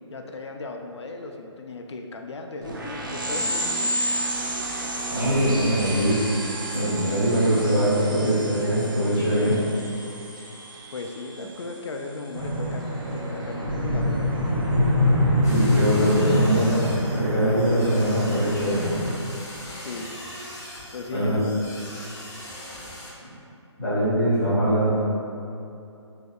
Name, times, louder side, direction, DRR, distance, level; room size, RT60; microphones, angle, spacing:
voice 1, 0.1-3.9 10.9-12.8 13.1-14.6 19.8-20.1 20.9-21.5, left 3 dB, 65° left, 3 dB, 0.4 m, -36 dB
sound 1, 2.6-12.8, right 1 dB, 40° right, 0.6 m, -32 dB
voice 2, 5.1-6.2 6.7-9.6 15.4-18.8 21.1-21.4 23.8-25.0, right 1 dB, ahead, -20 dB, 0.4 m, -22 dB
sound 2, 12.3-19.2, left 1 dB, 80° right, 1.1 m, -24 dB
sound 3, 15.4-23.1, left 1 dB, 35° left, 0.9 m, -40 dB
6.5 x 2.7 x 2.3 m, 2.7 s
hypercardioid pair, 175°, 16 cm